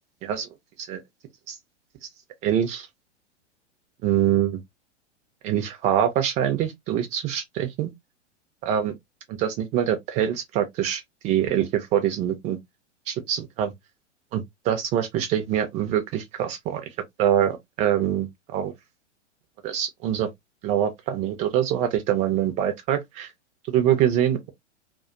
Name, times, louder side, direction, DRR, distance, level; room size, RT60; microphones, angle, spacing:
voice 1, 2.4-2.9 4.0-4.6 5.4-7.9 8.6-8.9 9.3-12.6 13.1-13.7 14.3-16.8 17.2-18.7 19.6-20.3 20.6-23.3 23.7-24.5, right 10 dB, 20° right, 0.4 m, -24 dB
2.4 x 2.2 x 2.3 m
figure-of-eight pair, 105°, 36 cm